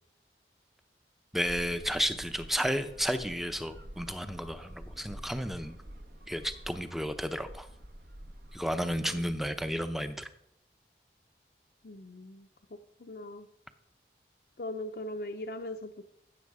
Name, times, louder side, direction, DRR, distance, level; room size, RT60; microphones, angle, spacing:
voice 1, 1.3-5.8 6.3-7.7 8.5-10.3, equal, ahead, 9 dB, 0.6 m, -32 dB
sound 1, 1.4-10.1, equal, 60° right, 1.0 m, -49 dB
voice 2, 11.8-12.5 13.0-13.5 14.6-16.0, left 1 dB, 55° left, 5 dB, 0.6 m, -40 dB
15.0 x 7.1 x 4.8 m, 0.76 s
head